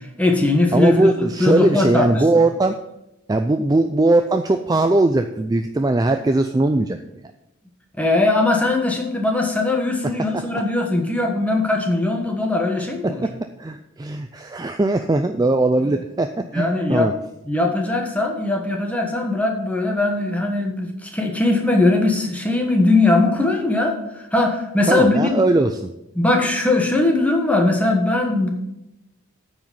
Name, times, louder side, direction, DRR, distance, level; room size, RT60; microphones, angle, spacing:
voice 1, 0.2-2.2 8.0-13.2 16.5-17.1 17.5-25.4 26.1-28.5, left 2 dB, 5° left, 1 dB, 1.3 m, -20 dB
voice 2, 0.7-2.8 3.3-7.0 10.0-10.4 13.0-17.1 24.9-25.9, right 2 dB, 15° right, 7 dB, 0.3 m, -20 dB
9.2 x 5.0 x 7.2 m, 0.87 s
head